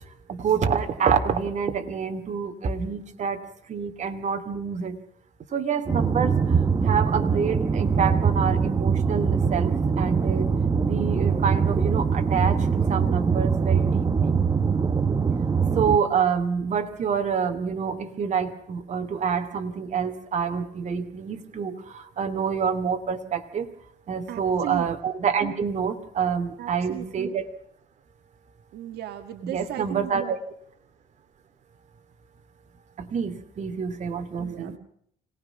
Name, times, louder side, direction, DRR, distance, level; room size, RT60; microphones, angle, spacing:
voice 1, 0.3-3.4 3.7-5.0 5.5-10.5 10.8-14.4 15.7-23.7 24.1-27.5 29.4-30.4 33.0-34.8, right 6 dB, 45° right, 7 dB, 2.5 m, -27 dB
sound 1, 5.9-16.0, right 6 dB, 20° right, 1.1 m, -23 dB
voice 2, 24.3-24.9 26.6-27.4 28.7-30.3 34.4-34.8, right 12 dB, 75° right, 6 dB, 1.6 m, -36 dB
26.0 x 18.5 x 5.9 m, 0.67 s
cardioid pair, 110°, 17 cm